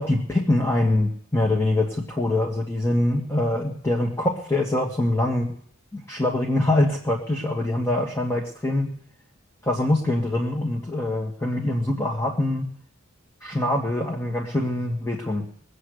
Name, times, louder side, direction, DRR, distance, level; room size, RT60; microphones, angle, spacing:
voice 1, 0.0-5.5 5.9-8.9 9.6-12.7 13.4-15.4, left 1 dB, 15° left, 0 dB, 1.7 m, -24 dB
21.5 x 8.4 x 6.5 m, 0.63 s
head